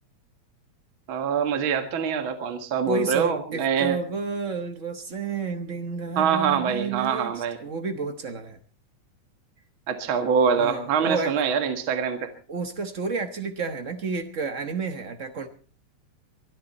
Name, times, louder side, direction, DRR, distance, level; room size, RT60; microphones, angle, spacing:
voice 1, 1.1-4.0 6.2-7.6 9.9-12.3, right 6 dB, 45° right, 7 dB, 2.3 m, -24 dB
voice 2, 2.8-8.6 10.6-11.3 12.5-15.5, right 4 dB, 80° right, 8 dB, 0.6 m, -30 dB
23.0 x 13.0 x 4.2 m, 0.38 s
omnidirectional pair, 3.4 m